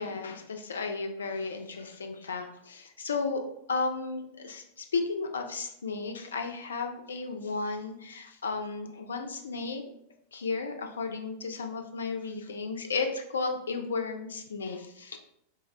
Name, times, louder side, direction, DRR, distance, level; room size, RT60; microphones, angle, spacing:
voice 1, 0.0-3.4 3.7-9.8 10.3-15.2, left 4 dB, 70° left, 5 dB, 0.3 m, -34 dB
3.8 x 2.0 x 2.5 m, 0.75 s
figure-of-eight pair, 90°, 0 cm